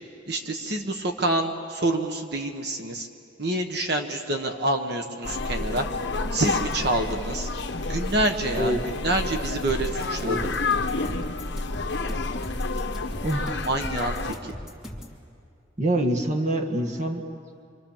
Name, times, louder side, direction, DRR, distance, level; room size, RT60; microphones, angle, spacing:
voice 1, 0.3-3.1 3.4-5.9 6.3-7.5 7.8-10.5 13.7-14.5, right 1 dB, 55° right, 4 dB, 1.5 m, -27 dB
sound 1, 5.2-14.3, left 3 dB, 65° left, 1.3 m, -29 dB
sound 2, 9.7-15.2, left 1 dB, ahead, 2.9 m, -40 dB
voice 2, 13.2-13.6 15.8-17.2, right 1 dB, 40° right, 2 dB, 1.5 m, -26 dB
27.5 x 25.5 x 7.4 m, 2.5 s
head